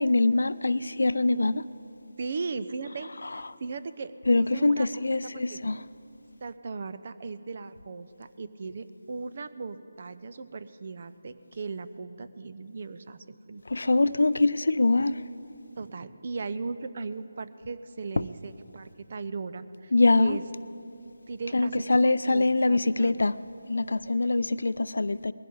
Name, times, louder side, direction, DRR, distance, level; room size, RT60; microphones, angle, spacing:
voice 1, 0.0-1.7 3.2-3.4 4.3-5.8 13.7-15.2 18.2-18.3 19.9-20.4 21.5-23.4 23.7-25.3, left 2 dB, 75° left, 0.4 m, -24 dB
voice 2, 2.2-4.9 5.5-5.6 6.4-13.6 15.8-19.9 20.2-20.4 21.3-23.1, right 4 dB, 45° right, 0.6 m, -37 dB
20.5 x 15.5 x 3.9 m
figure-of-eight pair, 160°, 0 cm